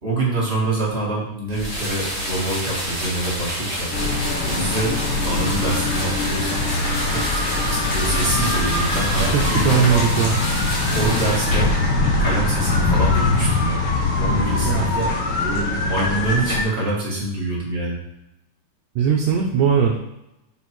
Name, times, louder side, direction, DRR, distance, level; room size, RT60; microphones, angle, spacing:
voice 1, 0.0-4.1 4.4-5.0 5.2-6.6 7.1-7.4 7.7-10.0 10.9-11.8 12.2-13.8 14.2-18.0, right 2 dB, 30° right, -5 dB, 1.2 m, -25 dB
sound 1, 1.5-11.9, equal, 15° left, 2.5 m, -29 dB
sound 2, 3.9-16.6, left 2 dB, 80° left, 3.1 m, -22 dB
sound 3, 6.6-10.3, equal, 55° left, 3.5 m, -30 dB
voice 2, 9.3-10.4 14.6-14.9 19.0-20.0, right 7 dB, 75° right, 0 dB, 1.9 m, -19 dB
6.5 x 4.2 x 4.5 m, 0.88 s
omnidirectional pair, 3.7 m